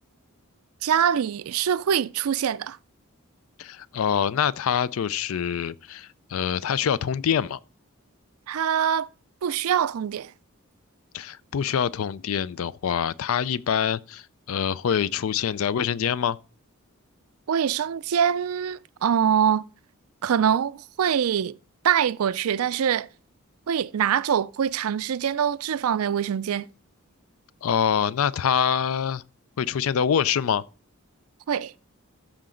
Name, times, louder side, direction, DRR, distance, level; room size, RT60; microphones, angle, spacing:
voice 1, 0.8-2.8 8.5-9.1 9.4-10.3 17.5-19.7 20.2-21.5 21.8-23.1 23.7-26.7 31.5-31.7, right 8 dB, 80° right, 0.4 m, -24 dB
voice 2, 3.6-7.6 11.1-16.4 27.6-29.2 29.6-30.6, left 8 dB, 70° left, 0.4 m, -25 dB
13.0 x 5.0 x 3.8 m
head